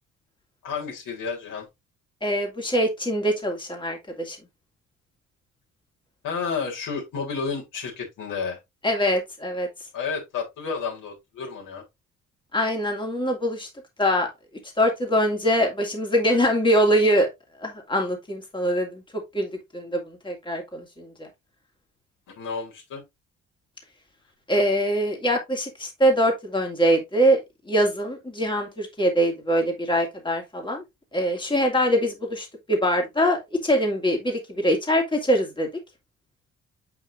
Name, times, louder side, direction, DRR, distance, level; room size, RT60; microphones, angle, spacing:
voice 1, 0.6-1.7 6.2-8.6 9.9-11.8 22.4-23.0, left 5 dB, 55° left, 3.7 m, -31 dB
voice 2, 2.2-4.4 8.8-9.7 12.5-13.7 14.0-14.3 14.8-17.3 17.6-19.0 19.3-21.1 24.5-27.4 27.7-30.8 31.1-35.7, equal, 15° left, 2.5 m, -23 dB
8.0 x 5.7 x 2.6 m
figure-of-eight pair, 45°, 37 cm